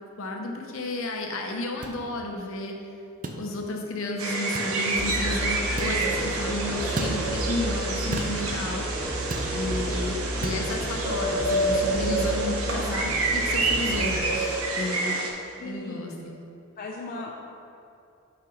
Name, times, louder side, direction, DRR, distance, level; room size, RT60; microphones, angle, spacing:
voice 1, 0.2-2.7 3.4-8.9 9.5-15.1 15.6-16.4, left 2 dB, 70° left, 1 dB, 0.8 m, -32 dB
sound 1, 1.8-2.0 3.2-3.4 4.5-4.7 5.8-6.0 7.0-7.2 8.1-8.4 9.3-9.5 10.4-10.6, right 2 dB, 40° right, 0.5 m, -33 dB
sound 2, 4.2-15.3, right 2 dB, 90° right, 0.9 m, -28 dB
Musical instrument, 5.0-14.2, equal, 20° left, 1.4 m, -33 dB
voice 2, 14.9-15.2 15.6-16.1 16.8-17.3, left 3 dB, 45° left, -2 dB, 0.5 m, -38 dB
5.8 x 4.1 x 4.9 m, 2.7 s
head